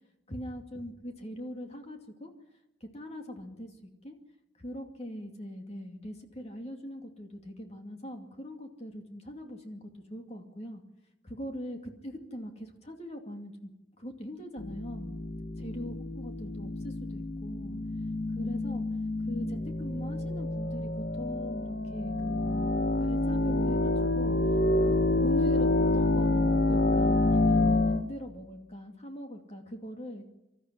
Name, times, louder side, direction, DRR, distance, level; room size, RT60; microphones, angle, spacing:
voice 1, 0.3-2.3 2.8-3.8 4.0-4.1 4.5-10.8 11.2-13.7 14.0-15.1 15.6-17.8 18.3-18.8 19.2-22.7 23.0-24.4 24.8-30.2, equal, 35° left, 3 dB, 2.5 m, -41 dB
sound 1, 14.6-28.0, left 2 dB, 60° left, 1.5 m, -28 dB
26.0 x 14.0 x 9.8 m, 0.95 s
head